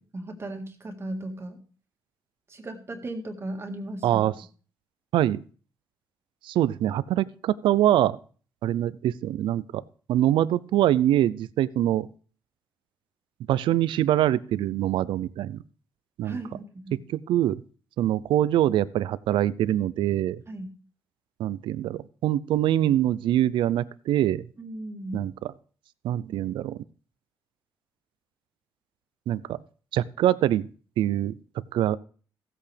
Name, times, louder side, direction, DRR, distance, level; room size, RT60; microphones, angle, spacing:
voice 1, 0.1-1.6 2.5-4.2 16.2-17.0 20.5-20.7 24.6-25.2, right 1 dB, 30° right, 4 dB, 1.8 m, -36 dB
voice 2, 4.0-4.3 5.1-5.4 6.4-8.2 8.6-9.8 10.1-12.1 13.5-15.6 16.2-16.4 17.1-17.6 18.0-20.4 21.4-24.5 25.1-25.3 26.0-26.8 29.3-29.6 29.9-30.7 31.0-31.3 31.7-32.0, right 12 dB, 75° right, 18 dB, 0.5 m, -24 dB
15.0 x 8.5 x 3.4 m, 0.42 s
cardioid pair, 85°, 8 cm